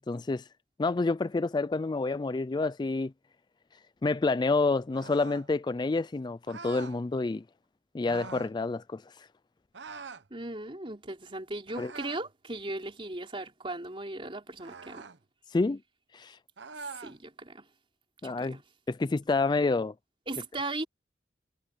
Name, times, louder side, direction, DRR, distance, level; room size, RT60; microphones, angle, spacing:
voice 1, 0.1-0.4 0.8-3.1 4.0-7.4 7.9-9.0 11.8-11.9 15.5-15.8 16.1-16.4 18.2-18.6 18.9-19.9, left 3 dB, 25° left, 0.3 m, -28 dB
sound 1, 4.9-5.5 6.5-7.0 8.0-8.5 9.7-10.3 11.7-12.3 14.6-15.2 16.6-17.2, right 4 dB, 85° right, 1.0 m, -44 dB
voice 2, 10.3-15.1 16.8-17.7 18.2-18.6 20.3-20.9, right 2 dB, 30° right, 3.7 m, -38 dB
head